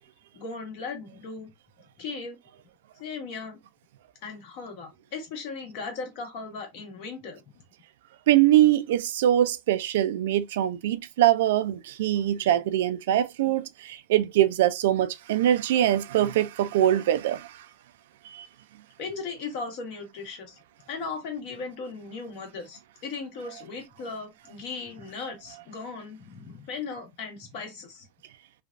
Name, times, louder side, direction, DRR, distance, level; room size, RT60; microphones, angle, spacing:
voice 1, 0.3-1.5 2.0-2.4 3.0-3.6 4.2-7.4 19.0-20.6 20.9-28.1, left 4 dB, 55° left, 1.4 m, -37 dB
voice 2, 8.3-17.6 18.2-18.5, right 12 dB, 80° right, 0.4 m, -23 dB
3.2 x 2.3 x 2.5 m
supercardioid pair, 155°, 0 cm